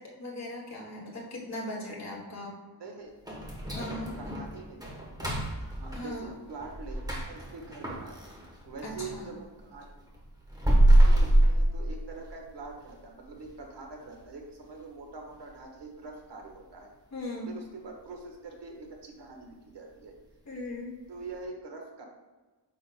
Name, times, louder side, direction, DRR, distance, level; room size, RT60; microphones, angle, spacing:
voice 1, 0.2-2.6 3.8-4.2 5.9-6.3 8.8-9.3 17.1-17.5 20.5-20.9, left 1 dB, 40° left, -3 dB, 1.9 m, -38 dB
voice 2, 2.7-3.1 3.7-4.9 5.2-5.4 5.8-8.4 8.6-9.9 11.0-16.9 17.5-20.2 21.1-22.0, right 3 dB, 70° right, 1 dB, 1.4 m, -44 dB
sound 1, 3.3-9.2 9.6-12.4 12.8-12.9 13.4-13.5 14.0-14.3 14.6-14.7 15.3-15.4, right 1 dB, 10° right, 1.1 m, -26 dB
9.3 x 6.1 x 2.2 m, 1.3 s
wide cardioid pair, 160°, 42 cm